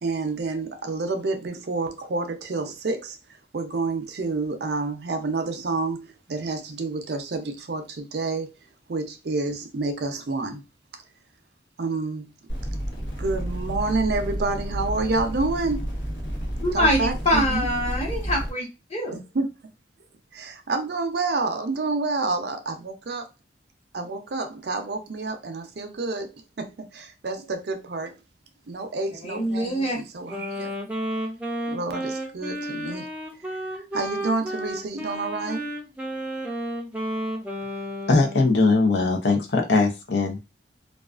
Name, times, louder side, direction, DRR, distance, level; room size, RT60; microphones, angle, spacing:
voice 1, 0.0-3.2 3.5-8.5 8.9-10.6 11.8-12.3 13.2-16.0 16.7-17.7 19.1-19.5 20.3-23.2 23.9-28.1 28.7-30.7 31.7-33.1 33.9-35.7, right 3 dB, 60° right, 0.5 m, -29 dB
sound 1, 12.5-18.5, equal, 90° left, 1.0 m, -30 dB
voice 2, 16.6-19.2 29.2-30.0, equal, 35° left, 0.9 m, -24 dB
Wind instrument woodwind instrument, 30.3-38.5, equal, 10° right, 0.4 m, -32 dB
voice 3, 38.1-40.4, left 3 dB, 75° left, 0.6 m, -20 dB
2.4 x 2.3 x 2.3 m
head